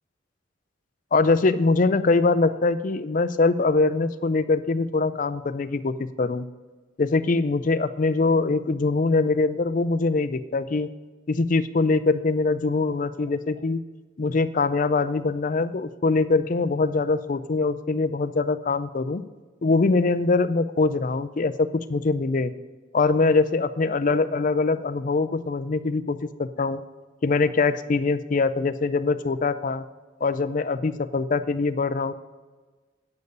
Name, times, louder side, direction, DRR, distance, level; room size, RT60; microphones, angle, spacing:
voice 1, 1.1-6.4 7.0-10.9 11.3-13.8 14.2-19.2 19.6-22.5 22.9-26.8 27.2-29.8 30.2-32.1, left 3 dB, 40° left, 12 dB, 0.4 m, -23 dB
9.6 x 8.2 x 5.3 m, 1.3 s
head